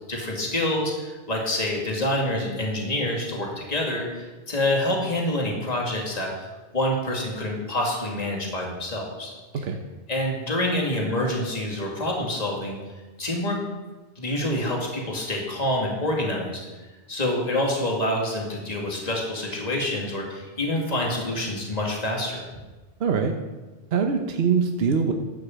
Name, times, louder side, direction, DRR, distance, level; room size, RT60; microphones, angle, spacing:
voice 1, 0.1-6.5 6.7-9.3 10.1-12.8 13.2-13.6 14.2-16.6 17.1-22.6, left 1 dB, 35° left, -1 dB, 2.2 m, -27 dB
voice 2, 23.0-23.3 23.9-25.1, right 6 dB, 60° right, 4 dB, 1.1 m, -22 dB
12.5 x 6.6 x 7.3 m, 1.2 s
omnidirectional pair, 1.2 m